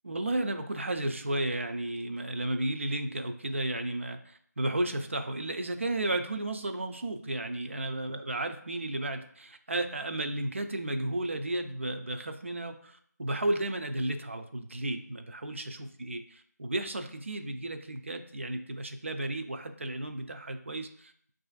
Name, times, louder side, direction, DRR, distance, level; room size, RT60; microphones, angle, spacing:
voice 1, 0.0-16.2 16.6-21.3, right 1 dB, 45° right, 7 dB, 0.4 m, -33 dB
5.9 x 2.5 x 2.3 m, 0.62 s
figure-of-eight pair, 165°, 10 cm